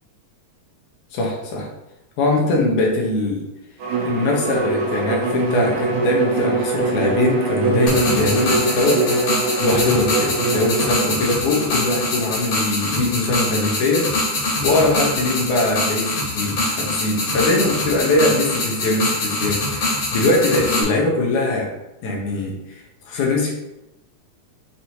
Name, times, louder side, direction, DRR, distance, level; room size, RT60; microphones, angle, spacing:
voice 1, 1.1-1.7 2.2-3.4 4.0-9.0 9.6-21.7 22.0-23.5, left 2 dB, 85° left, -1 dB, 2.3 m, -21 dB
Bowed string instrument, 3.8-11.2, right 3 dB, 85° right, 2.0 m, -23 dB
sound 1, 7.9-20.8, left 2 dB, 60° left, 1.8 m, -24 dB
6.0 x 2.6 x 2.8 m, 0.95 s
omnidirectional pair, 3.4 m